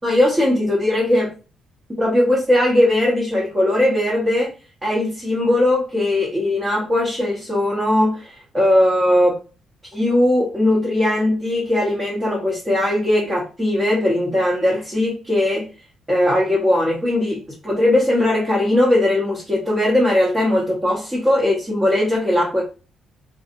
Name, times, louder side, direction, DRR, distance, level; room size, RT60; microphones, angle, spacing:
voice 1, 0.0-1.3 2.0-4.5 4.8-9.4 9.9-15.7 16.1-22.6, left 1 dB, 20° right, 0.9 m, -19 dB
2.6 x 2.4 x 2.6 m
cardioid pair, 90°, 0 cm